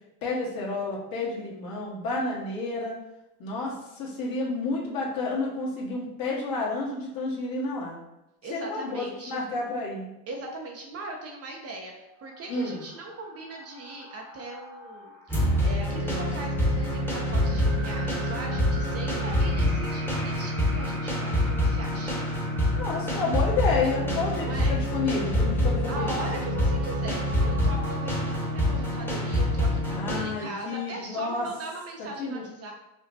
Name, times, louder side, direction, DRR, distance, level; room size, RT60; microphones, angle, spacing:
voice 1, 0.2-3.0 3.4-8.0 8.5-10.1 12.5-12.8 22.8-26.2 29.9-31.5 32.2-32.4, left 3 dB, 50° left, -4 dB, 1.3 m, -30 dB
voice 2, 8.4-9.4 10.3-22.2 24.4-24.8 25.9-32.7, right 2 dB, 35° right, 1 dB, 0.5 m, -39 dB
sound 1, 12.0-29.4, right 2 dB, 80° right, 1.4 m, -44 dB
sound 2, 15.3-30.2, left 1 dB, 5° left, 0.9 m, -26 dB
5.0 x 2.1 x 2.6 m, 0.91 s
supercardioid pair, 100°, 45 cm